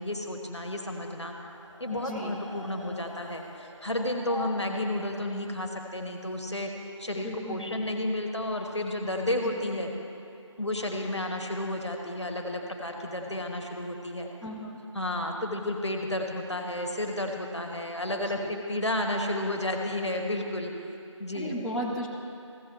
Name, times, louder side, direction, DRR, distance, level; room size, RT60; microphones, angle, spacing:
voice 1, 0.0-1.3 1.8-6.7 7.0-9.9 10.6-14.3 14.9-20.7 21.2-21.5, left 1 dB, 60° left, 2 dB, 1.4 m, -32 dB
sound 1, 1.5-6.4, left 2 dB, 65° right, 1.0 m, -45 dB
voice 2, 1.9-2.4 7.1-7.9 9.4-9.6 14.4-14.8 18.2-18.5 21.3-22.1, equal, ahead, -9 dB, 0.4 m, -36 dB
15.5 x 6.6 x 3.1 m, 2.7 s
figure-of-eight pair, 175°, 16 cm